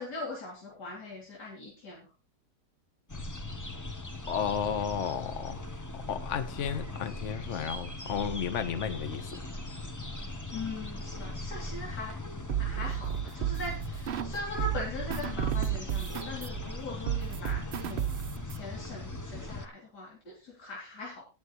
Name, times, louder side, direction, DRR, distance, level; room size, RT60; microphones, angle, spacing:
voice 1, 0.0-2.1 10.5-12.2 12.6-18.1 18.4-21.2, left 2 dB, 85° left, 3.5 m, -40 dB
sound 1, 3.1-19.7, left 2 dB, 20° left, 0.5 m, -39 dB
voice 2, 4.3-5.6 5.9-9.4, left 8 dB, 50° left, 1.3 m, -33 dB
sound 2, 12.5-14.3 14.6-18.6, right 11 dB, 75° right, 0.5 m, -32 dB
18.5 x 7.0 x 3.1 m
omnidirectional pair, 1.7 m